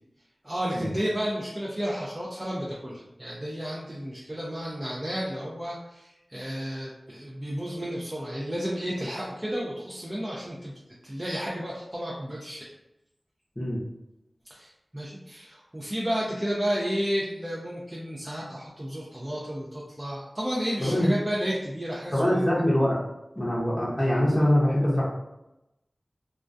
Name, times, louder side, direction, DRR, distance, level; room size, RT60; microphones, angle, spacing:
voice 1, 0.4-10.7 11.0-12.7 14.5-22.5, equal, 25° right, -5 dB, 0.5 m, -32 dB
voice 2, 20.8-21.1 22.1-23.0 23.4-25.1, left 1 dB, 20° left, -7 dB, 0.7 m, -23 dB
2.2 x 2.2 x 2.5 m, 0.92 s
cardioid pair, 45°, 0 cm